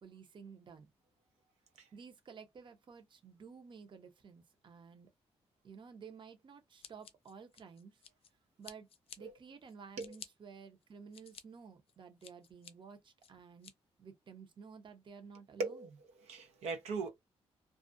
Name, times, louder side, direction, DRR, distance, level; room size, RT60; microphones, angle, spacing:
voice 1, 0.0-0.9 1.9-5.1 5.6-8.0 8.6-8.9 9.2-13.7 14.0-15.9, right 6 dB, 50° right, 0.6 m, -53 dB
Scissors, 6.8-8.3 8.6-9.2 9.7-10.3 10.8-11.4 11.9-12.7 13.2-13.7, left 7 dB, 60° left, 0.4 m, -53 dB
voice 2, 15.6-15.9 16.2-17.1, right 3 dB, 90° right, 0.5 m, -39 dB
2.4 x 2.1 x 2.5 m
cardioid pair, 80°, 11 cm